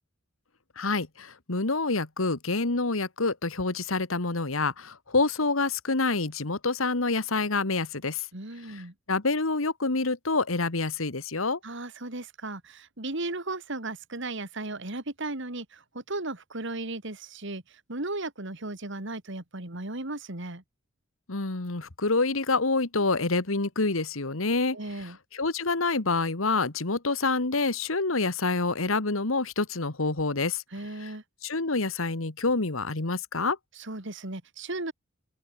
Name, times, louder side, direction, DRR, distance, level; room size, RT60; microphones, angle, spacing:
voice 1, 0.8-8.3 9.1-11.6 21.3-24.8 25.3-30.6 31.4-33.6, left 3 dB, 85° left, 1.9 m, -27 dB
voice 2, 8.3-8.9 11.6-20.6 24.7-25.2 30.7-31.2 33.7-34.9, right 2 dB, 65° right, 3.0 m, -36 dB
open air
head